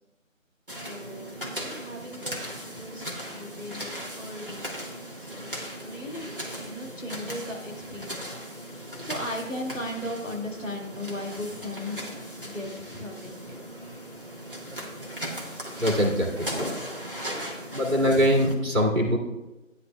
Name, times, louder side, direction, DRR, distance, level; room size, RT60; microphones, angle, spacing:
voice 1, 0.7-2.4 2.8-3.0 3.3-4.8 5.2-8.3 9.0-12.0 12.4-13.6 15.0-15.8 16.6-16.8, left 1 dB, 70° left, 0 dB, 2.1 m, -37 dB
sound 1, 0.7-18.5, equal, 40° right, 1.4 m, -37 dB
voice 2, 15.8-16.7 17.7-19.2, equal, 60° right, 0 dB, 2.0 m, -23 dB
12.5 x 9.7 x 2.2 m, 1.0 s
figure-of-eight pair, 180°, 40 cm